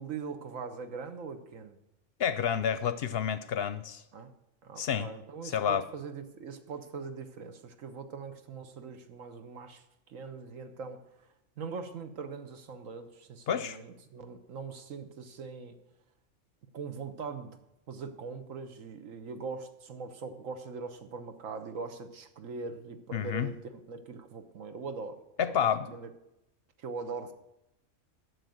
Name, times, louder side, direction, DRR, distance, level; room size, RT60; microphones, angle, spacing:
voice 1, 0.0-1.8 4.1-4.3 4.6-9.8 10.1-11.0 11.6-15.8 16.7-17.6 17.9-26.1 26.8-27.3, right 5 dB, 85° right, 1.5 m, -41 dB
voice 2, 2.2-4.0 4.8-5.1 5.4-5.8 13.5-13.8 23.1-23.5 25.4-25.9, left 8 dB, 60° left, 0.7 m, -29 dB
11.0 x 6.7 x 7.8 m
omnidirectional pair, 1.3 m